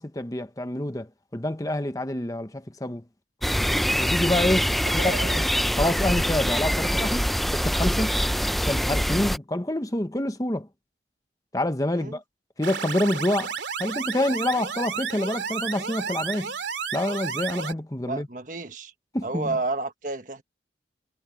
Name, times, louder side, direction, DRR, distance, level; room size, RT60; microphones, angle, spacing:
voice 1, 0.0-3.0 4.0-5.5 5.8-8.2 8.6-10.7 11.5-12.2 12.6-13.5 13.8-16.5 16.9-18.3 19.1-19.6, left 1 dB, 20° left, 0.9 m, -27 dB
sound 1, 3.4-9.4, equal, ahead, 0.4 m, -24 dB
voice 2, 4.8-5.5 11.9-12.2 18.0-18.9 19.2-20.4, right 3 dB, 45° right, 1.5 m, -31 dB
sound 2, 12.6-17.7, right 6 dB, 80° right, 2.6 m, -32 dB
head